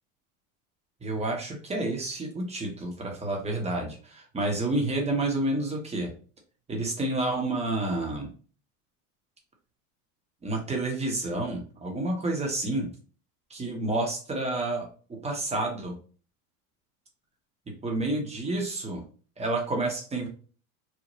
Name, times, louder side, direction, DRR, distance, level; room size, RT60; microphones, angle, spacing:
voice 1, 1.0-6.1 6.7-8.3 10.4-12.9 13.5-14.9 15.2-15.9 17.8-19.0 19.4-20.3, right 2 dB, 15° right, 0 dB, 0.8 m, -29 dB
3.0 x 2.1 x 2.6 m, 0.40 s
hypercardioid pair, 105°, 44 cm